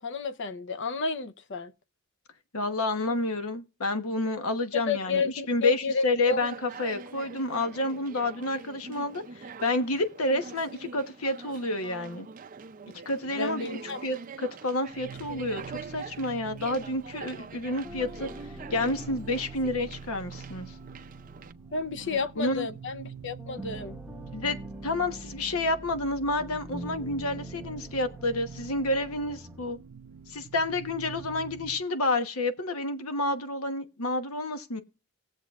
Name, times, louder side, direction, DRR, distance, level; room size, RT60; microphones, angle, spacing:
voice 1, 0.0-1.7 4.7-6.4 13.4-14.0 21.7-24.0, left 4 dB, 55° left, 0.7 m, -31 dB
voice 2, 2.5-12.3 13.0-18.3 18.7-20.7 22.0-22.7 24.3-24.6 24.8-29.8 30.3-34.8, left 2 dB, 75° left, 1.1 m, -29 dB
Conversation, 6.3-21.5, right 5 dB, 35° right, 0.5 m, -45 dB
sound 1, 14.9-31.9, right 7 dB, 90° right, 0.6 m, -46 dB
sound 2, 17.8-23.1 23.4-29.7, equal, 5° right, 0.9 m, -45 dB
18.5 x 7.4 x 2.4 m
head